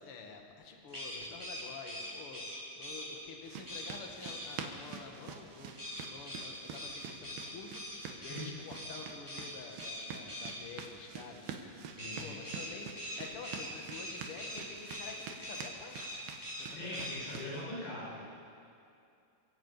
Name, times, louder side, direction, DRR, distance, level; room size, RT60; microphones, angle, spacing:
voice 1, 0.0-5.8 6.1-17.4, left 4 dB, 45° left, 2 dB, 2.2 m, -49 dB
sound 1, 0.9-3.1 3.7-3.9 4.2-4.5 5.8-8.4 8.7-9.0 9.3-9.5 9.8-10.5 12.0-14.6 14.9-15.1 15.4-15.7 15.9-16.6 16.9-17.2, equal, 5° right, 4.2 m, -42 dB
sound 2, 3.4-17.6, right 6 dB, 80° right, 3.3 m, -47 dB
voice 2, 12.0-12.4 16.8-18.2, left 1 dB, 80° left, -7 dB, 8.6 m, -41 dB
29.5 x 16.5 x 5.7 m, 2.5 s
omnidirectional pair, 4.5 m